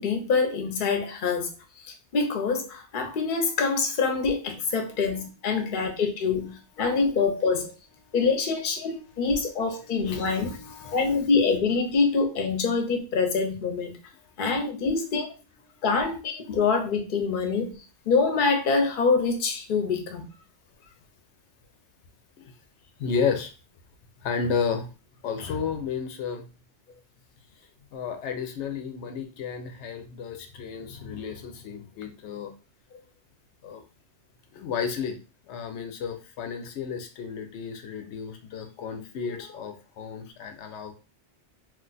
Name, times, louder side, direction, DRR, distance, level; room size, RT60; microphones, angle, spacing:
voice 1, 0.0-1.5 2.1-7.7 8.1-10.5 10.9-14.0 14.4-15.3 15.8-17.8 18.1-20.3, left 4 dB, 55° left, 0.8 m, -25 dB
voice 2, 5.5-5.8 10.0-11.1 20.8-20.9 22.4-22.5 23.0-23.5 24.2-24.9 25.2-26.4 27.9-32.5 33.6-33.8 34.5-35.2 35.5-40.9, left 6 dB, 85° left, 0.9 m, -32 dB
2.4 x 2.2 x 3.9 m
omnidirectional pair, 1.1 m